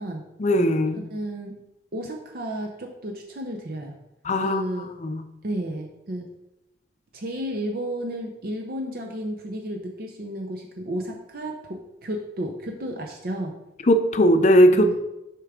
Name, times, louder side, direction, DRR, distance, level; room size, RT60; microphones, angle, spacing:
voice 1, 0.4-1.0 4.2-4.6 5.0-5.2 13.9-15.0, equal, 40° left, 8 dB, 0.5 m, -18 dB
voice 2, 0.9-1.6 1.9-4.0 4.4-4.9 5.4-6.3 7.1-13.5 14.7-15.0, right 1 dB, 55° right, 2 dB, 0.6 m, -32 dB
6.7 x 4.6 x 3.6 m, 0.90 s
head